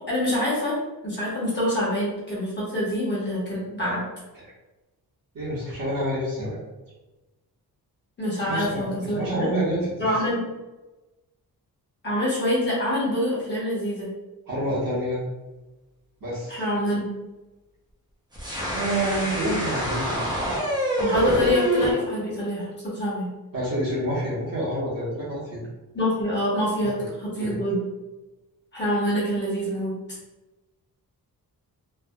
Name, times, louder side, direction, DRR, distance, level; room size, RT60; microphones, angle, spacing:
voice 1, 0.1-0.7 1.0-4.0 8.2-9.5 10.0-10.4 12.0-14.1 16.5-17.1 21.0-23.3 25.9-27.9 28.7-29.9, equal, 30° left, -8 dB, 1.0 m, -25 dB
voice 2, 5.3-6.6 8.5-10.1 14.5-15.2 16.2-16.6 18.6-20.2 23.5-25.6 26.8-26.9 27.4-27.7, right 1 dB, 65° right, -7 dB, 1.2 m, -28 dB
sound 1, 18.3-21.9, right 1 dB, 10° right, 0.6 m, -26 dB
3.3 x 2.3 x 2.2 m, 1.1 s
wide cardioid pair, 180°, 37 cm